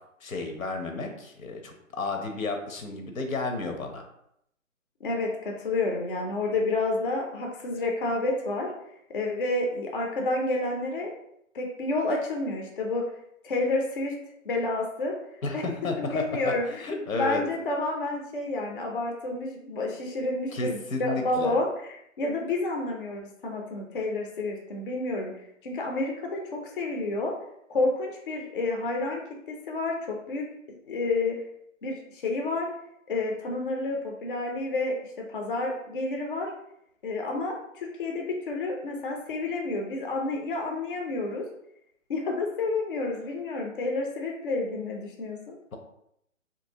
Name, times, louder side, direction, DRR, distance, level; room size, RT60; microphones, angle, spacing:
voice 1, 0.2-4.1 15.4-17.4 20.5-21.5, left 3 dB, 90° left, 4 dB, 0.8 m, -32 dB
voice 2, 5.0-8.7 9.1-11.1 11.5-13.0 13.4-14.1 14.4-15.1 15.5-15.6 16.0-25.3 25.6-27.3 27.7-29.2 29.5-30.4 30.9-31.4 31.8-32.7 33.1-35.0 35.3-36.5 37.0-41.4 42.1-45.6, left 2 dB, 40° left, 1 dB, 0.4 m, -29 dB
2.8 x 2.6 x 2.7 m, 0.76 s
hypercardioid pair, 160°, 40 cm